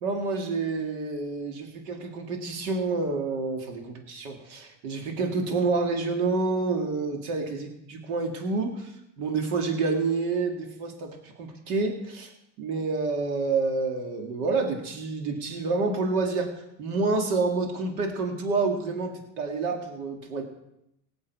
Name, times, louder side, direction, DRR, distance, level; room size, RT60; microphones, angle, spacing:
voice 1, 0.0-12.3 12.6-16.5 16.8-19.1 19.4-20.4, right 3 dB, 90° right, 2 dB, 2.4 m, -28 dB
18.0 x 7.2 x 4.8 m, 0.82 s
supercardioid pair, 95°, 41 cm